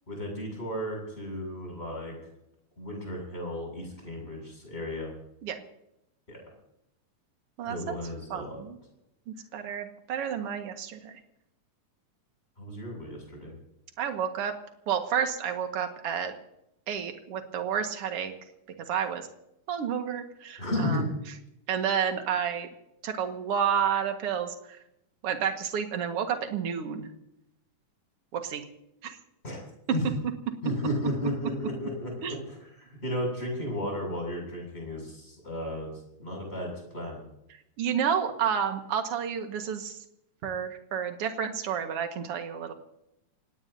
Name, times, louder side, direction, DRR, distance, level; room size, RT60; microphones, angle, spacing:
voice 1, 0.1-2.1 2.8-5.1 6.3-6.4 7.6-8.6 12.6-13.5 20.6-21.1 29.4-29.6 29.9-30.0 30.6-35.9 36.2-37.2, left 1 dB, 20° left, 0 dB, 7.6 m, -34 dB
voice 2, 7.6-8.0 8.3-8.8 9.3-11.2 14.0-14.5 14.9-16.3 16.9-18.3 18.9-19.2 19.7-21.0 21.7-22.7 23.0-24.8 25.2-27.1 28.3-28.6 29.0-29.2 32.2-32.4 37.8-40.0 40.4-42.7, right 8 dB, 50° right, 5 dB, 2.4 m, -30 dB
27.5 x 19.0 x 2.8 m, 0.83 s
omnidirectional pair, 3.6 m